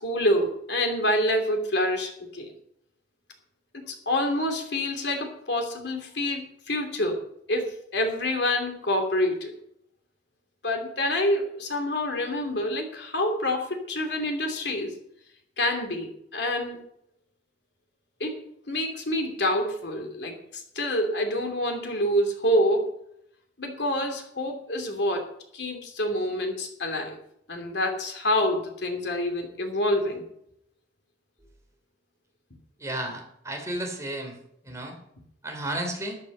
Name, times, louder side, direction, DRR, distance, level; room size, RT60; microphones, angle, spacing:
voice 1, 0.0-2.5 3.7-7.2 7.5-9.5 10.6-15.0 15.6-16.8 18.2-18.4 18.7-22.9 23.6-25.3 25.5-27.2 27.5-30.2, left 1 dB, 65° left, 4 dB, 3.1 m, -27 dB
voice 2, 32.8-34.4 34.6-35.0 35.4-36.2, right 1 dB, 15° right, 2 dB, 3.4 m, -33 dB
13.5 x 9.6 x 5.6 m, 0.74 s
head